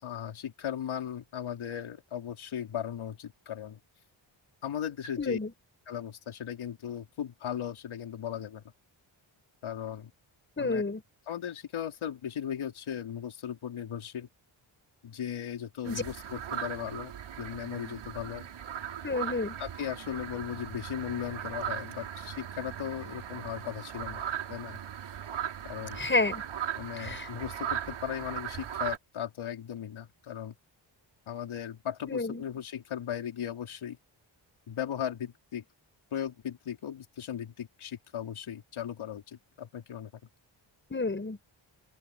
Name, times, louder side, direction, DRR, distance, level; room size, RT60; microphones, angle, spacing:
voice 1, 0.0-3.8 4.6-5.4 5.9-8.6 9.6-10.1 10.6-10.8 11.3-14.3 15.0-17.1 17.4-18.5 19.6-24.2 24.5-24.8 25.6-26.0 26.7-30.5 31.3-34.0 34.7-35.6 36.1-40.1, left 9 dB, 85° left, 4.6 m, -37 dB
voice 2, 5.2-5.5 10.6-11.0 15.9-16.0 19.0-19.6 26.0-26.4 27.0-27.3 32.1-32.4 40.9-41.4, left 3 dB, 25° left, 5.2 m, -30 dB
sound 1, 15.9-29.0, right 9 dB, 85° right, 7.5 m, -38 dB
open air
cardioid pair, 100°, 47 cm